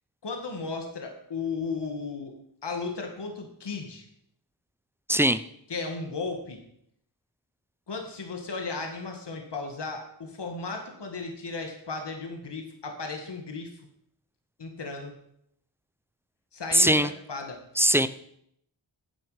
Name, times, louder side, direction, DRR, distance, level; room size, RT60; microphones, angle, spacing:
voice 1, 0.2-2.3 2.6-4.0 5.7-6.6 7.9-13.7 14.6-15.1 16.5-17.6, left 4 dB, 60° left, 3 dB, 1.8 m, -35 dB
voice 2, 5.1-5.4 16.7-17.1 17.8-18.1, equal, 5° right, 13 dB, 0.5 m, -20 dB
9.9 x 7.7 x 4.9 m, 0.72 s
cardioid pair, 50°, 47 cm